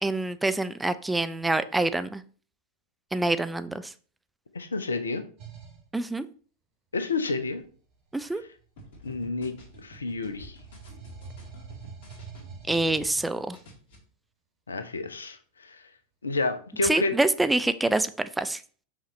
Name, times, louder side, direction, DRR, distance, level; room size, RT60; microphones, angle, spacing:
voice 1, 0.0-2.2 3.1-3.9 5.9-6.2 8.1-8.4 12.7-13.6 16.8-18.6, right 2 dB, 5° right, 12 dB, 0.4 m, -26 dB
voice 2, 4.5-5.2 6.9-7.6 8.3-8.5 9.0-9.5 9.8-10.6 14.7-15.4 15.6-15.9 16.2-17.1, left 3 dB, 75° left, 10 dB, 0.7 m, -30 dB
sound 1, 5.4-5.9 7.2-9.1 9.5-13.6, right 5 dB, 40° right, 2.6 m, -47 dB
sound 2, 8.8-13.2 13.5-13.9, equal, 50° left, 2.1 m, -49 dB
5.9 x 5.5 x 3.2 m, 0.42 s
figure-of-eight pair, 90°, 0 cm